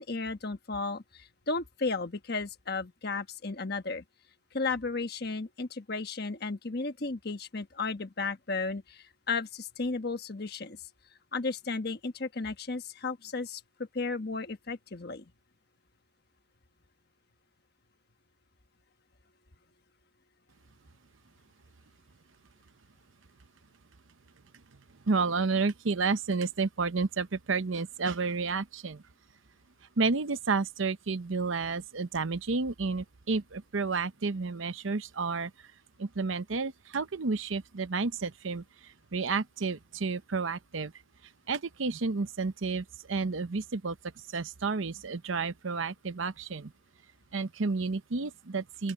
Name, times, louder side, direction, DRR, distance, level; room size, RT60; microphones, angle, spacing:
voice 1, 0.0-4.0 4.5-10.8 11.3-15.2, left 3 dB, 55° left, 1.3 m, -34 dB
voice 2, 25.1-29.0 30.0-35.5 36.0-40.9 41.5-44.0 44.3-46.7 47.3-48.9, right 4 dB, 80° right, 0.8 m, -31 dB
open air
head